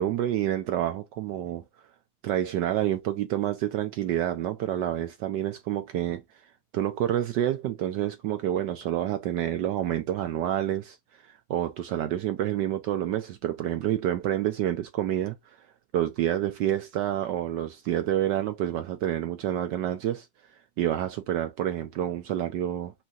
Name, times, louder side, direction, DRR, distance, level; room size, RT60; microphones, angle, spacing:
voice 1, 0.0-1.6 2.2-6.2 6.7-11.0 11.3-15.6 15.9-20.3 20.8-22.9, right 12 dB, 75° right, 1.0 m, -28 dB
4.5 x 2.6 x 3.7 m
omnidirectional pair, 2.3 m